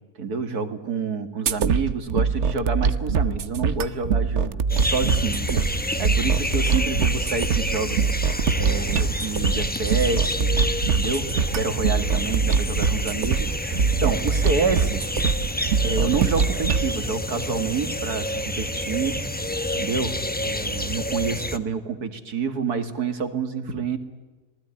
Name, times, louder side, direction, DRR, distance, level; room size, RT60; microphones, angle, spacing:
voice 1, 0.2-8.2 8.5-11.3 11.5-15.1 15.8-19.2 19.7-24.0, right 4 dB, 85° right, 8 dB, 2.7 m, -28 dB
sound 1, 1.5-16.9, right 6 dB, 55° right, 1.2 m, -23 dB
sound 2, 4.7-21.6, left 1 dB, 10° left, 0.8 m, -29 dB
27.0 x 19.5 x 9.9 m, 1.2 s
omnidirectional pair, 1.6 m